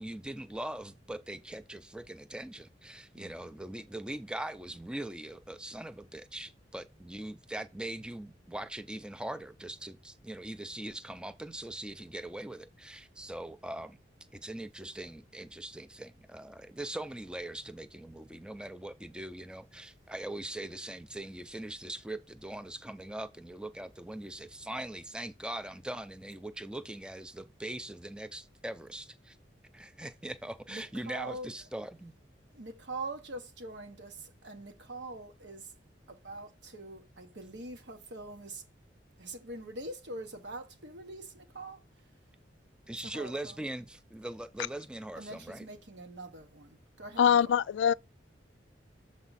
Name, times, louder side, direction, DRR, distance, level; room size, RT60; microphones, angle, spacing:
voice 1, 0.0-14.0 14.3-29.4 29.7-32.1 42.9-45.7, right 1 dB, 5° right, 0.5 m, -41 dB
voice 2, 3.2-3.5 30.7-31.5 32.5-35.7 36.1-38.6 39.2-41.8 42.9-43.7 45.1-47.6, right 2 dB, 75° right, 1.3 m, -44 dB
voice 3, 47.2-47.9, left 8 dB, 85° left, 0.3 m, -23 dB
7.2 x 4.2 x 4.1 m
head